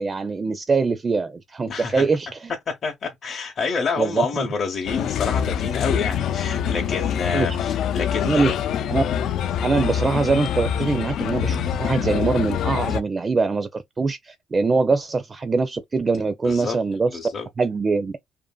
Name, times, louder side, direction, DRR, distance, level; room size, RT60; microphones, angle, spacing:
voice 1, 0.0-2.5 4.0-4.5 7.3-7.6 8.2-8.5 8.9-9.0 9.6-17.2 17.6-18.2, right 4 dB, 35° right, 0.4 m, -23 dB
voice 2, 1.7-2.0 2.7-8.5 16.4-16.8 17.1-17.5, left 5 dB, 50° left, 0.7 m, -28 dB
Bird, 4.9-13.0, left 9 dB, 75° left, 0.3 m, -25 dB
2.7 x 2.5 x 2.2 m
cardioid pair, 90°, 0 cm